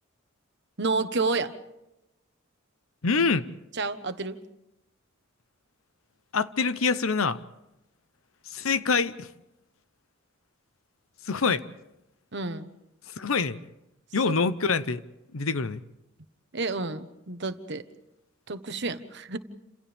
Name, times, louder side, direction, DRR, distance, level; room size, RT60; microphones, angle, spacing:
voice 1, 0.8-1.5 3.8-4.4 12.3-12.7 14.3-14.4 16.5-17.9 18.5-19.4, right 3 dB, 55° right, 1.2 m, -30 dB
voice 2, 3.0-3.5 6.3-7.4 8.5-9.3 11.2-11.6 13.1-13.7 14.1-15.0 15.3-15.8, left 4 dB, 80° left, 0.9 m, -25 dB
29.5 x 27.5 x 3.5 m
head